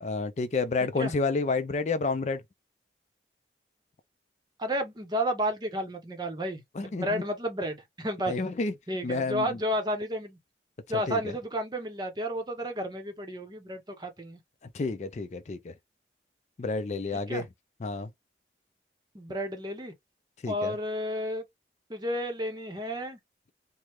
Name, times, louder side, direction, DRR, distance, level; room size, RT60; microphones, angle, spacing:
voice 1, 0.0-2.4 6.8-7.2 8.3-8.7 9.0-9.6 11.1-11.2 14.7-15.7 16.6-17.5 17.8-18.1 20.4-20.7, left 3 dB, 40° left, 0.3 m, -30 dB
voice 2, 4.6-8.3 8.9-10.4 10.9-14.4 17.1-17.4 19.1-19.9 20.5-21.4 21.9-23.2, equal, 25° right, 0.7 m, -32 dB
3.2 x 2.0 x 2.9 m
head